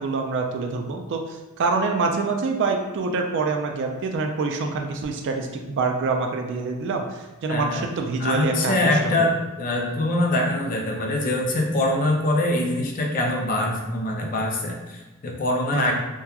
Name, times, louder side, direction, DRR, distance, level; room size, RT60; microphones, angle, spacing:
voice 1, 0.0-9.3 15.7-15.9, right 4 dB, 55° right, 3 dB, 0.3 m, -26 dB
voice 2, 7.5-7.9 8.2-15.9, left 1 dB, 40° left, 0 dB, 0.4 m, -24 dB
2.8 x 2.2 x 2.3 m, 1.1 s
head